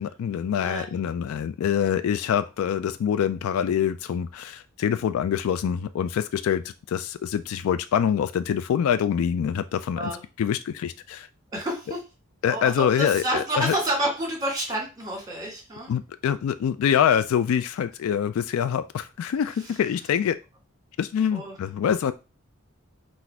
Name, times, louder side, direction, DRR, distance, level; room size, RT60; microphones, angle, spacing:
voice 1, 0.0-10.1 10.4-11.3 12.4-13.8 15.9-20.4 21.0-22.1, left 8 dB, 85° left, 13 dB, 0.3 m, -25 dB
voice 2, 0.6-0.9 10.0-10.2 11.5-12.0 12.5-15.9 21.3-21.5, right 1 dB, 20° right, 0 dB, 1.5 m, -29 dB
4.0 x 2.5 x 4.4 m, 0.29 s
head